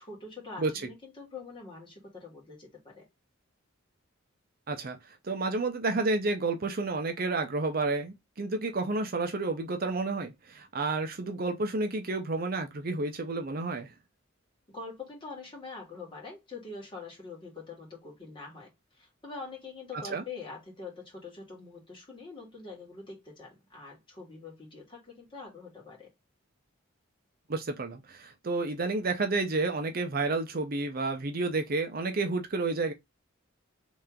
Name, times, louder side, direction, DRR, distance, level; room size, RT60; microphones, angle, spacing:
voice 1, 0.0-3.0 14.7-26.1, left 4 dB, 25° left, 2.0 m, -44 dB
voice 2, 5.2-13.9 20.1-20.2 27.5-32.9, right 3 dB, 45° right, 0.6 m, -30 dB
3.3 x 3.1 x 3.6 m
head